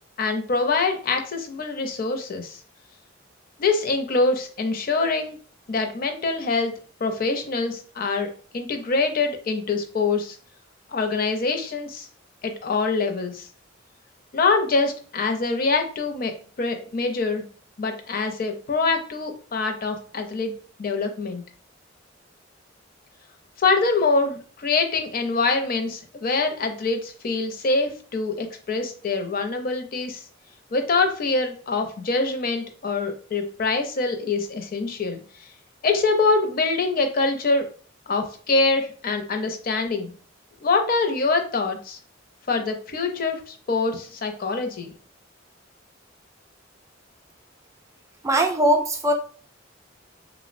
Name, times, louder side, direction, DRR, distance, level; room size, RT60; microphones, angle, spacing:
voice 1, 0.2-2.6 3.6-5.4 5.7-6.7 7.0-10.4 10.9-12.1 12.4-13.4 14.3-16.3 16.6-17.4 17.8-20.5 20.8-21.4 23.6-30.2 30.7-35.2 35.8-37.7 38.1-40.1 40.6-42.0 42.5-44.9, left 3 dB, 50° left, 5 dB, 0.5 m, -24 dB
voice 2, 48.2-49.1, right 1 dB, 15° right, 5 dB, 0.3 m, -20 dB
3.4 x 2.0 x 2.5 m, 0.42 s
head